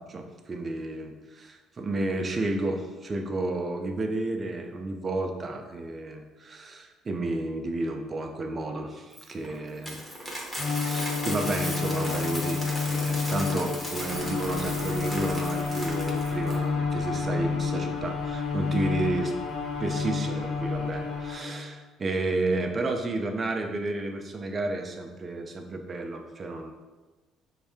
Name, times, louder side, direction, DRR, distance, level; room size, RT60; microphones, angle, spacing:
voice 1, 0.1-10.0 10.8-12.6 12.9-19.3 19.8-26.7, right 2 dB, 20° right, 4 dB, 0.4 m, -31 dB
Coin (dropping), 9.1-16.6, equal, 5° left, 0.7 m, -36 dB
Bowed string instrument, 10.6-21.8, left 5 dB, 50° left, 0.4 m, -30 dB
sound 1, 14.1-21.3, right 3 dB, 60° right, 0.7 m, -44 dB
5.6 x 2.6 x 3.4 m, 1.2 s
cardioid pair, 175°, 0 cm